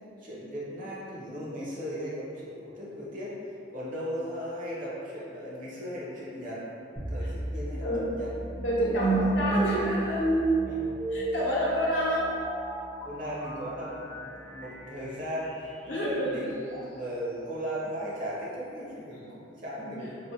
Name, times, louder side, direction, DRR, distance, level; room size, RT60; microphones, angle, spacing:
voice 1, 0.2-3.3 3.7-6.7 6.9-8.3 8.9-9.3 9.5-9.9 10.7-11.0 13.0-20.2, equal, 45° right, -7 dB, 0.7 m, -37 dB
sound 1, 7.0-16.1, right 2 dB, 10° left, 0.5 m, -32 dB
voice 2, 8.6-10.2 11.1-12.3 15.9-16.4, equal, 75° left, -7 dB, 0.8 m, -28 dB
4.1 x 2.1 x 2.6 m, 2.6 s
head